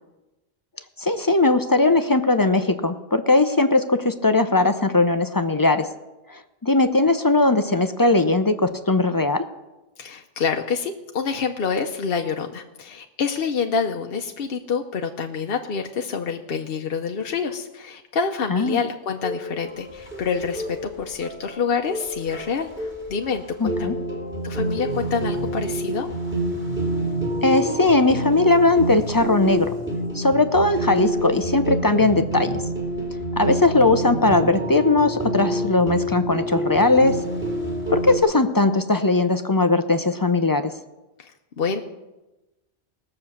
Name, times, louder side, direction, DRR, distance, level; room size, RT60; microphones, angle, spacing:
voice 1, 1.0-5.9 6.3-9.4 18.5-18.8 23.6-24.0 27.4-29.7 30.1-32.6 33.4-37.2 37.9-40.7, left 2 dB, 25° left, 9 dB, 0.5 m, -19 dB
voice 2, 10.0-23.9 24.4-26.1 41.2-41.8, left 5 dB, 65° left, 4 dB, 0.9 m, -27 dB
sound 1, 19.2-38.2, right 1 dB, 10° right, 2.8 m, -28 dB
19.0 x 6.5 x 7.2 m, 1.1 s
omnidirectional pair, 1.1 m